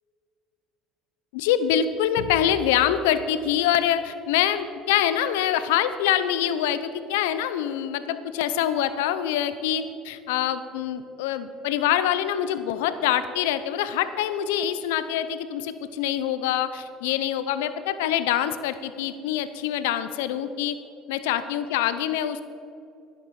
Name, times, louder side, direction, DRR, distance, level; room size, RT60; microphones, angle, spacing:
voice 1, 1.3-20.8 21.1-22.4, left 10 dB, 90° left, 12 dB, 0.7 m, -25 dB
12.0 x 11.0 x 4.9 m, 2.6 s
supercardioid pair, 90°, 0 cm